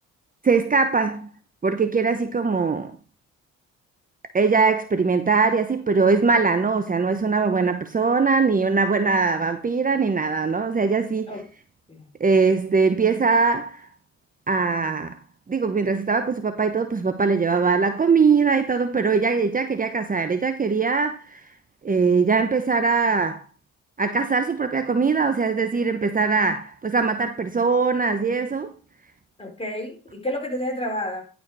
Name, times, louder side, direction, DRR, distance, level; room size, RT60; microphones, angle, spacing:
voice 1, 0.4-1.3 1.6-3.0 4.3-11.3 12.2-13.9 14.5-15.2 15.5-21.4 21.8-23.4 24.0-28.7, right 4 dB, 25° right, 0.9 m, -21 dB
voice 2, 29.4-31.2, left 1 dB, 20° left, 4.1 m, -30 dB
10.5 x 5.2 x 4.7 m
supercardioid pair, 60°, 31 cm